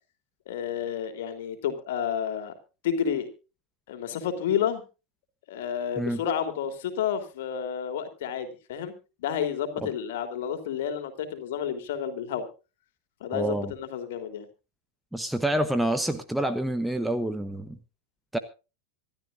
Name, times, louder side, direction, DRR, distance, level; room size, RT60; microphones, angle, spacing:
voice 1, 0.5-2.5 2.8-3.3 3.9-4.8 5.5-8.9 9.2-12.5 13.2-14.5, left 8 dB, 55° left, 8 dB, 3.2 m, -30 dB
voice 2, 13.3-13.7 15.1-17.8 18.3-18.4, right 1 dB, 5° right, 10 dB, 1.1 m, -27 dB
26.0 x 12.5 x 2.5 m, 0.32 s
figure-of-eight pair, 90°, 0 cm